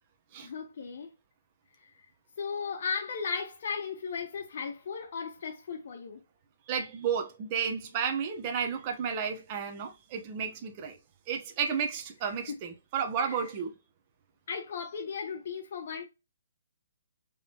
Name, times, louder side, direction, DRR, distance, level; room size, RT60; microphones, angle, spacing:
voice 1, 0.4-1.1 1.8-1.9 2.4-6.2 12.5-12.6 13.2-13.4 14.5-16.0, left 6 dB, 55° left, 0.9 m, -36 dB
voice 2, 6.7-11.0 11.3-13.7, right 7 dB, 30° right, 0.9 m, -32 dB
5.2 x 3.3 x 2.9 m
hypercardioid pair, 155°, 0 cm